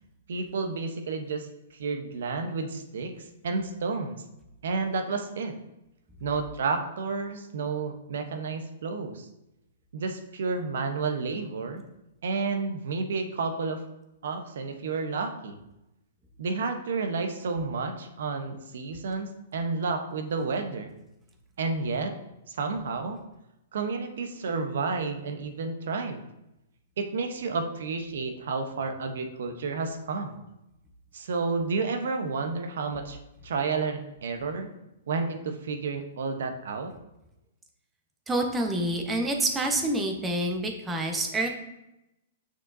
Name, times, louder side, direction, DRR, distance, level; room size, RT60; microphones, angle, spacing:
voice 1, 0.3-1.5 1.8-3.1 3.4-4.2 4.6-5.5 6.2-9.2 9.9-11.8 12.2-13.8 14.2-15.6 16.4-20.9 21.6-22.1 22.5-23.2 23.7-26.2 27.0-30.4 31.1-33.2 33.4-34.7 35.1-36.9, right 4 dB, 75° right, 6 dB, 0.9 m, -31 dB
voice 2, 38.3-41.5, right 1 dB, 15° right, 3 dB, 1.0 m, -27 dB
6.5 x 6.5 x 2.7 m, 0.91 s
hypercardioid pair, 135°, 0 cm